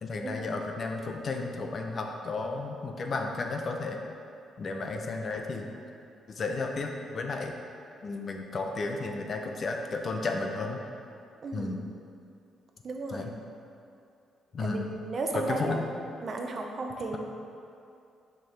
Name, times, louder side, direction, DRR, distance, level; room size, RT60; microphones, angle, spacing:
voice 1, 0.0-4.0 4.6-5.7 6.3-7.5 8.0-10.8 11.5-11.9 13.1-13.3 14.5-14.9 15.3-15.9, left 3 dB, 45° left, 3 dB, 0.6 m, -33 dB
voice 2, 11.4-11.7 12.8-13.3 14.6-15.8 16.2-17.2, right 3 dB, 45° right, 2 dB, 0.6 m, -34 dB
6.3 x 4.6 x 3.3 m, 2.5 s
cardioid pair, 90°, 0 cm